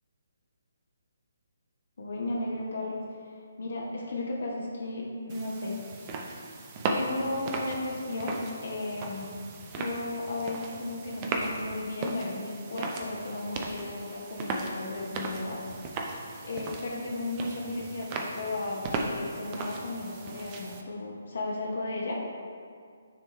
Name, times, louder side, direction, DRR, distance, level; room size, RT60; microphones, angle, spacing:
voice 1, 2.0-3.3 3.6-6.1 6.9-9.3 9.7-15.6 16.4-22.2, left 2 dB, 55° left, -3 dB, 0.9 m, -35 dB
sound 1, 5.3-20.8, right 3 dB, 25° right, 0.5 m, -37 dB
9.8 x 3.3 x 3.1 m, 2.2 s
figure-of-eight pair, 140°, 0 cm